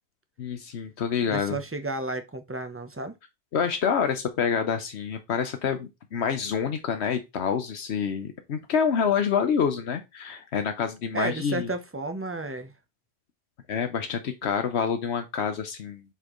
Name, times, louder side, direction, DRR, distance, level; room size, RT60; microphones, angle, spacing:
voice 1, 0.4-1.6 3.5-11.7 13.7-16.0, left 7 dB, 80° left, 1.1 m, -27 dB
voice 2, 1.2-3.2 11.1-12.7, right 2 dB, 15° right, 0.7 m, -32 dB
8.0 x 4.3 x 3.0 m
omnidirectional pair, 1.1 m